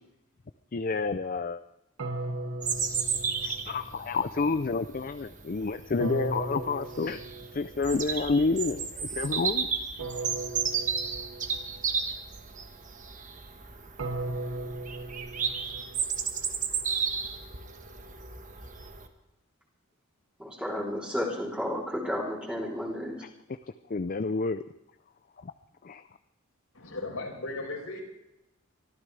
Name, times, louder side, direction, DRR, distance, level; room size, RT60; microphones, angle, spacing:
voice 1, 0.7-1.6 3.4-7.2 7.5-9.7 23.9-24.6 25.4-25.5 25.8-26.0, left 4 dB, 40° left, 10 dB, 0.5 m, -29 dB
sound 1, 2.0-4.0 6.0-7.8 10.0-11.8 14.0-16.2, right 2 dB, 80° right, 1.3 m, -37 dB
Bird vocalization bird call bird song, 2.6-19.1, right 6 dB, 35° right, 1.3 m, -33 dB
voice 2, 20.4-23.2, left 1 dB, 5° right, -4 dB, 3.3 m, -32 dB
voice 3, 26.7-28.0, left 2 dB, 85° left, -1 dB, 5.3 m, -36 dB
24.0 x 13.5 x 3.3 m, 0.91 s
head